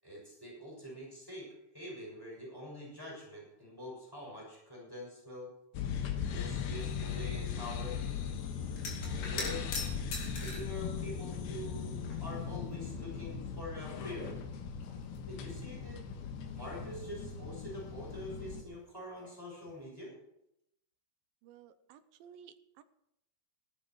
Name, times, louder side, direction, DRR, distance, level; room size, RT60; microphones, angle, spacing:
voice 1, 0.0-1.5 1.7-5.5 6.3-8.0 9.0-9.6 10.2-14.4 15.3-16.0 16.5-20.1, left 1 dB, 5° right, -3 dB, 6.3 m, -45 dB
sound 1, 5.7-18.6, left 6 dB, 75° left, 3.1 m, -38 dB
sound 2, 8.7-10.8 11.6-12.4 12.7-12.8 14.1-14.2 14.5-15.6 19.1-19.4 19.7-19.9, left 3 dB, 60° left, 4.6 m, -42 dB
voice 2, 21.4-22.8, right 8 dB, 75° right, 10 dB, 2.4 m, -56 dB
15.5 x 12.0 x 4.8 m, 0.81 s
omnidirectional pair, 4.5 m